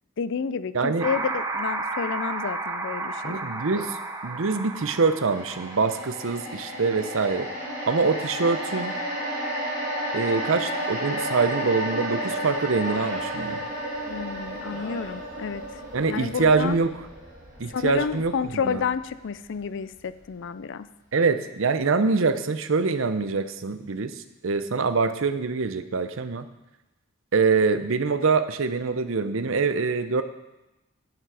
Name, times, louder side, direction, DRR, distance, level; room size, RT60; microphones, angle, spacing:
voice 1, 0.2-3.4 14.1-15.6 16.0-16.8 17.7-20.9, left 6 dB, 60° left, 14 dB, 0.4 m, -30 dB
voice 2, 0.7-1.1 3.2-7.5 7.9-9.0 10.1-13.7 15.9-17.1 17.6-18.9 21.1-26.5 27.3-30.2, right 4 dB, 65° right, 11 dB, 0.7 m, -24 dB
sound 1, 1.0-6.3, right 3 dB, 15° right, 0.7 m, -32 dB
sound 2, 5.3-19.6 20.0-20.2, right 1 dB, 45° right, 3.8 m, -32 dB
Human voice, 10.9-11.5 12.0-14.1 14.5-15.6 15.9-16.2, left 2 dB, 40° left, 2.4 m, -46 dB
9.4 x 9.3 x 4.8 m, 0.97 s
head